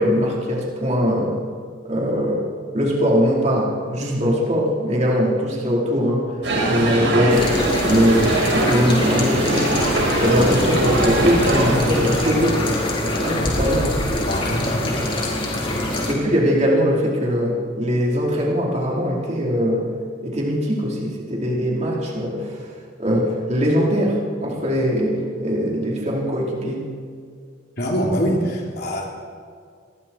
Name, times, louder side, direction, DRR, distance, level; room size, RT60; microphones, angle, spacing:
voice 1, 0.0-1.4 1.8-2.5 2.7-9.8 10.2-14.0 16.1-19.9 20.2-22.7 23.0-26.9, equal, 35° right, -3 dB, 4.6 m, -21 dB
sound 1, 6.4-12.6, right 1 dB, 65° right, 5.5 m, -22 dB
sound 2, 7.3-16.1, left 1 dB, 25° left, 4.4 m, -25 dB
voice 2, 14.2-15.2 15.6-15.9 27.8-29.1, equal, 55° left, 0 dB, 3.5 m, -24 dB
28.0 x 21.5 x 4.7 m, 2.1 s
head